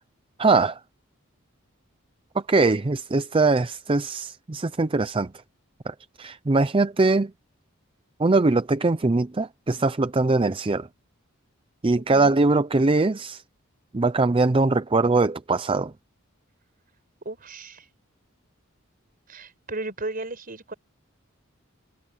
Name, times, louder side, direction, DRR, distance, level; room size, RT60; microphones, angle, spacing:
voice 1, 0.4-0.8 2.3-5.3 5.9-7.3 8.2-10.9 11.8-13.4 13.9-15.9, right 3 dB, 25° right, 0.5 m, -22 dB
voice 2, 11.9-12.4 14.2-14.3 17.2-17.9 19.3-20.7, right 2 dB, 45° right, 5.0 m, -35 dB
head